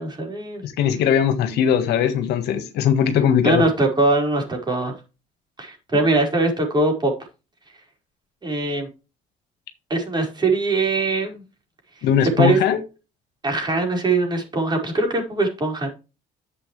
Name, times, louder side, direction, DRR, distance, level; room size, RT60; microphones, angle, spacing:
voice 1, 0.0-0.6 3.4-4.9 5.6-7.1 8.4-8.9 9.9-11.4 12.4-12.6 13.4-15.9, right 2 dB, 25° right, 5.0 m, -21 dB
voice 2, 0.6-3.6 12.0-12.8, left 8 dB, 80° left, 1.7 m, -20 dB
11.0 x 7.5 x 3.3 m
cardioid pair, 110°, 17 cm